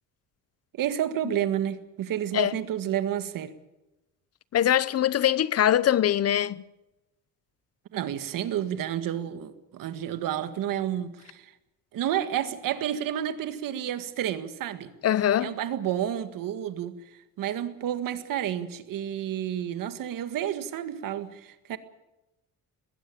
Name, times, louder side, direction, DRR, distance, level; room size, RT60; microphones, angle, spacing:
voice 1, 0.8-3.6 7.9-11.5 11.9-14.9 15.4-17.0 17.4-21.8, right 10 dB, 70° right, 1.8 m, -30 dB
voice 2, 4.5-6.6 15.0-15.5, left 11 dB, 45° left, 0.7 m, -23 dB
21.5 x 16.0 x 8.7 m
cardioid pair, 120°, 35 cm